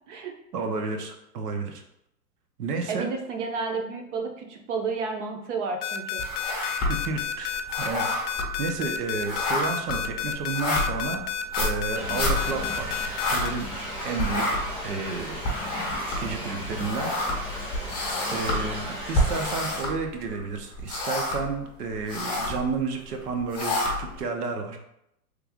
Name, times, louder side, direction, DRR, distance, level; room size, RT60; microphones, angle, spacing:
voice 1, 0.5-1.8 2.6-3.1 6.9-8.3 8.6-11.2 11.5-13.7 14.0-15.4 16.2-17.1 18.3-24.8, right 4 dB, 90° right, 4 dB, 0.8 m, -31 dB
voice 2, 2.9-6.2, right 4 dB, 50° right, 3 dB, 0.7 m, -31 dB
sound 1, 5.8-13.5, left 9 dB, 85° left, 0.5 m, -30 dB
sound 2, 6.2-7.2 7.5-13.9 14.2-20.4 20.7-21.6 21.9-22.6 23.2-24.2, left 1 dB, 10° left, 0.7 m, -29 dB
Thunder / Rain, 11.9-19.8, equal, 15° right, 0.3 m, -35 dB
3.3 x 2.4 x 3.4 m, 0.79 s
hypercardioid pair, 155°, 45 cm